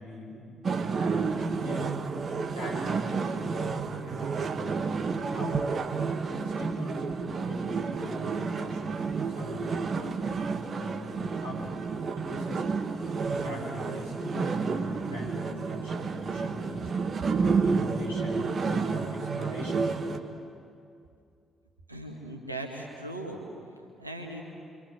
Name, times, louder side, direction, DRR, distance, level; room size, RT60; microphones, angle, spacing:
voice 1, 0.0-1.9 2.5-5.6 6.3-12.8 13.4-16.9 17.4-20.1, left 1 dB, 85° left, -7 dB, 7.6 m, -41 dB
sound 1, 0.6-20.2, right 5 dB, 40° right, 1.6 m, -30 dB
voice 2, 21.9-23.4 23.8-24.4, right 1 dB, 90° right, 1 dB, 2.2 m, -39 dB
27.0 x 25.5 x 7.7 m, 2.4 s
figure-of-eight pair, 45°, 0 cm